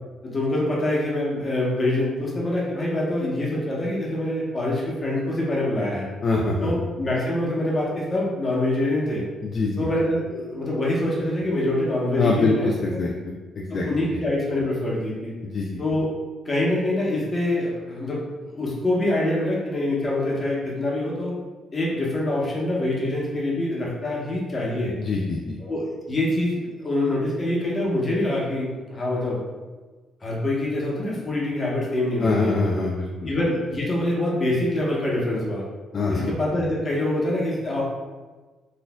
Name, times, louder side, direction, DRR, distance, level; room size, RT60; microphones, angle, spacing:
voice 1, 0.2-6.1 6.6-9.2 9.8-12.7 13.7-15.3 15.8-16.1 16.4-21.3 21.7-24.9 25.6-29.4 30.2-32.6 33.3-35.6 36.1-37.8, left 1 dB, 35° left, -4 dB, 1.0 m, -25 dB
voice 2, 6.2-6.7 9.4-9.9 12.2-13.8 15.5-15.8 25.0-25.6 32.2-33.3 35.9-36.3, left 3 dB, 50° left, -1 dB, 0.4 m, -24 dB
4.1 x 2.5 x 2.2 m, 1.3 s
cardioid pair, 90°, 0 cm